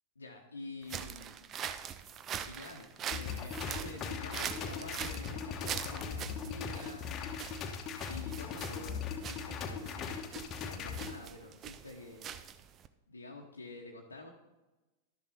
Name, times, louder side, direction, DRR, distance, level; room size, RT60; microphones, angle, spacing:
voice 1, 0.2-1.4 2.4-7.1 8.1-12.3 13.1-14.3, left 2 dB, 75° left, 0 dB, 1.0 m, -48 dB
sound 1, 0.8-12.9, right 8 dB, 30° right, 0.6 m, -43 dB
sound 2, 3.1-11.1, left 6 dB, 30° left, 1.2 m, -39 dB
12.0 x 7.0 x 4.3 m, 1.1 s
figure-of-eight pair, 90°, 0 cm